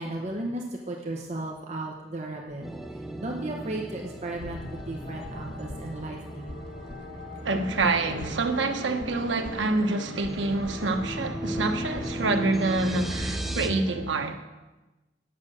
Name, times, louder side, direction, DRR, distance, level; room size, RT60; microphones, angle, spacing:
voice 1, 0.0-2.6 2.9-6.6, right 2 dB, 40° right, 1.0 m, -35 dB
sound 1, 2.6-13.7, equal, ahead, 0.6 m, -37 dB
sound 2, 4.2-13.9, left 1 dB, 70° left, 1.8 m, -41 dB
voice 2, 7.4-14.4, right 3 dB, 90° right, 1.1 m, -27 dB
9.6 x 6.3 x 7.7 m
head